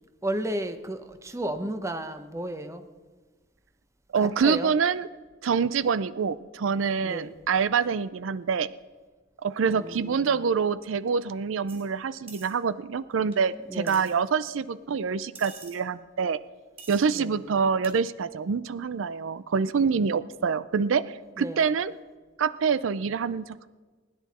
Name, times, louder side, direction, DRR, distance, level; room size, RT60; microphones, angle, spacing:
voice 1, 0.2-2.8 4.2-4.7 7.0-7.4 9.6-10.4 13.7-14.2 17.1-17.4 21.4-21.8, right 1 dB, 15° right, 9 dB, 0.8 m, -34 dB
voice 2, 4.1-5.1 5.4-8.7 9.4-16.4 16.9-21.9 22.4-23.7, right 6 dB, 90° right, 16 dB, 0.5 m, -26 dB
sound 1, 11.7-11.8 12.3-12.5 13.3-13.4 13.9-14.1 15.3-15.8 16.8-17.2 17.8-17.9, right 4 dB, 30° right, 3.3 m, -46 dB
20.0 x 10.5 x 4.2 m, 1.3 s
head